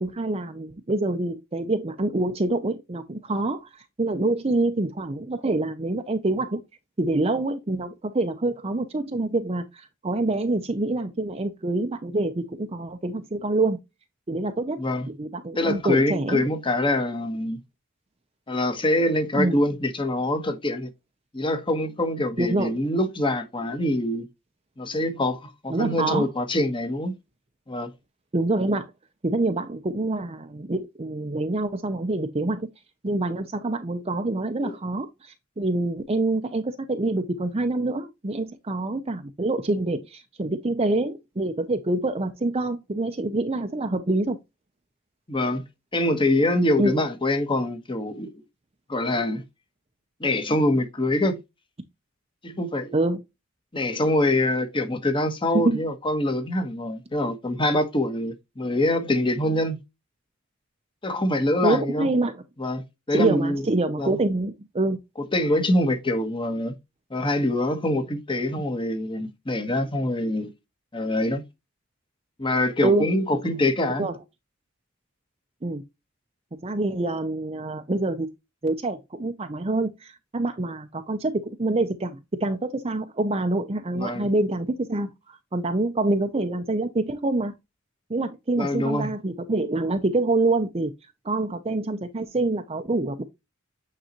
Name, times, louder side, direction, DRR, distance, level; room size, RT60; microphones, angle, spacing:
voice 1, 0.0-3.7 4.0-6.6 7.0-13.8 14.3-16.4 19.3-19.6 22.4-22.7 25.7-26.3 28.3-28.9 29.2-32.7 33.0-44.4 46.8-46.9 52.9-53.2 55.5-55.8 61.6-62.4 63.1-65.0 72.8-73.1 73.4-73.6 74.0-74.2 75.6-75.8 76.6-78.3 78.6-87.5 88.1-90.9 91.2-93.2, right 2 dB, 30° right, 0.7 m, -26 dB
voice 2, 15.5-17.6 18.5-20.9 21.3-24.3 24.8-27.1 27.7-27.9 34.6-34.7 45.3-45.6 45.9-48.3 48.9-49.4 50.2-51.4 52.4-52.9 53.7-59.8 61.0-62.1 62.6-63.7 64.0-64.2 65.2-66.7 67.1-70.5 70.9-71.4 72.4-74.1 83.9-84.3 88.6-89.1, left 1 dB, 25° left, 1.4 m, -24 dB
9.0 x 4.0 x 3.0 m
head